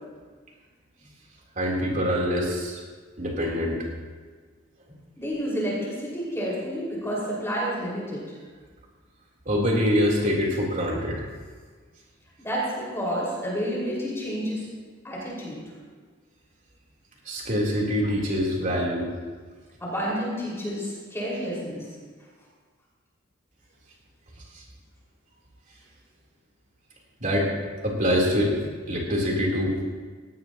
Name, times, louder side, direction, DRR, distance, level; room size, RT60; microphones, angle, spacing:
voice 1, 1.6-2.8 3.2-3.8 9.5-11.2 17.3-19.1 24.5-24.6 27.2-27.5 27.8-29.9, equal, 40° right, -3 dB, 3.7 m, -25 dB
voice 2, 5.2-8.4 12.4-14.6 15.0-15.6 19.8-21.9, equal, 15° left, -6 dB, 5.4 m, -30 dB
18.0 x 17.5 x 3.0 m, 1.5 s
head